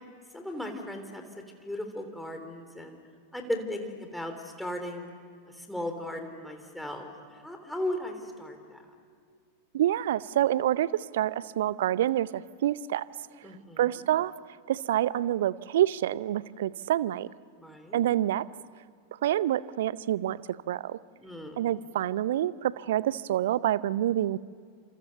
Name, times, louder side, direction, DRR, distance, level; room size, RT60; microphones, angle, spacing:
voice 1, 0.3-1.2 1.6-3.0 3.3-5.1 5.6-8.8 13.4-14.0 17.6-18.0 21.2-21.6, left 1 dB, ahead, 4 dB, 3.4 m, -36 dB
voice 2, 9.7-13.0 13.8-14.3 14.7-17.3 17.9-18.4 19.2-21.0 21.6-24.4, right 12 dB, 55° right, 19 dB, 0.6 m, -27 dB
29.5 x 27.5 x 6.9 m, 2.2 s
figure-of-eight pair, 90°, 0 cm